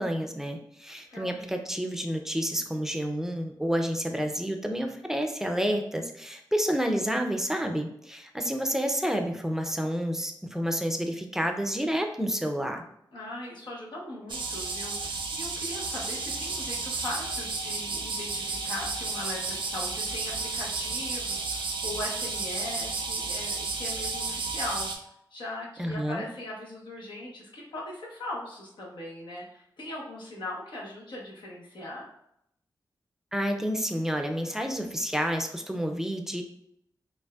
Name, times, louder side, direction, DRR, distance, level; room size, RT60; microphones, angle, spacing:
voice 1, 0.0-12.8 25.8-26.2 33.3-36.4, equal, 5° right, 4 dB, 0.5 m, -29 dB
voice 2, 13.1-24.9 25.3-32.1, left 1 dB, 70° left, -4 dB, 1.2 m, -39 dB
sound 1, 14.3-25.0, right 3 dB, 85° right, 0.6 m, -32 dB
5.2 x 2.6 x 2.4 m, 0.75 s
cardioid pair, 75°, 8 cm